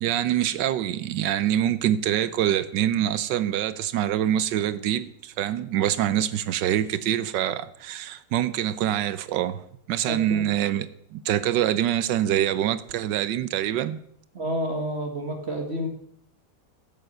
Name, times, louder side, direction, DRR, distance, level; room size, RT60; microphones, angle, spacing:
voice 1, 0.0-9.6 9.9-14.0, right 11 dB, 80° right, 1.3 m, -25 dB
voice 2, 10.1-10.5 14.3-15.9, equal, 35° right, 1.9 m, -29 dB
11.0 x 6.9 x 7.8 m
omnidirectional pair, 2.0 m